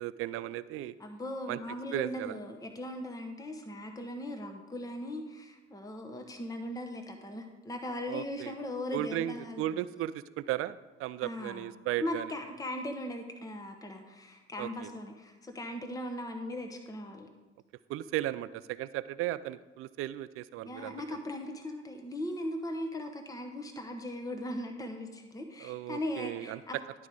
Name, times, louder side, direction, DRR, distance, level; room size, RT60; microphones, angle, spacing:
voice 1, 0.0-0.9 1.5-1.6 1.9-2.4 8.1-8.5 8.9-12.3 14.6-14.9 17.9-21.0 25.6-26.6, right 14 dB, 40° right, 16 dB, 0.4 m, -35 dB
voice 2, 1.0-9.6 11.2-17.3 20.6-26.8, left 1 dB, 10° left, 4 dB, 1.0 m, -39 dB
11.0 x 4.7 x 5.1 m, 1.2 s
figure-of-eight pair, 55°, 36 cm